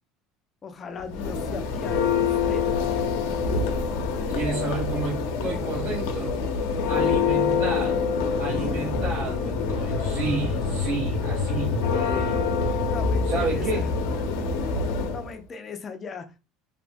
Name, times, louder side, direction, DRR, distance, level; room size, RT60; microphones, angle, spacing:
voice 1, 0.6-2.6 6.8-7.1 12.9-13.9 14.4-16.4, left 5 dB, 25° left, 6 dB, 0.4 m, -39 dB
Church bell, 1.0-15.3, left 5 dB, 85° left, 0.4 m, -26 dB
voice 2, 4.3-6.4 6.9-12.6 13.2-13.8, right 3 dB, 65° right, -8 dB, 1.3 m, -31 dB
2.7 x 2.1 x 2.5 m, 0.30 s
cardioid pair, 160°, 0 cm